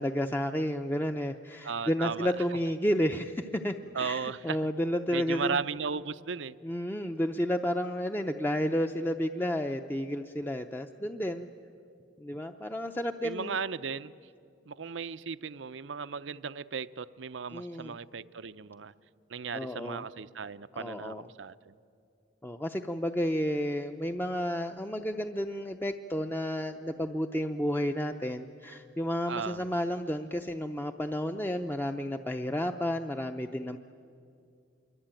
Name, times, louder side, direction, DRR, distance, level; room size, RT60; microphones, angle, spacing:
voice 1, 0.0-5.6 6.6-11.5 12.2-13.6 17.5-18.0 19.5-20.0 20.7-21.3 22.4-33.8, equal, 10° left, 5 dB, 0.6 m, -31 dB
voice 2, 1.6-2.3 3.9-4.6 5.1-6.6 13.2-14.1 14.7-18.9 19.3-21.7 29.3-29.6, right 5 dB, 80° right, 14 dB, 0.6 m, -36 dB
27.0 x 23.5 x 9.0 m, 2.4 s
head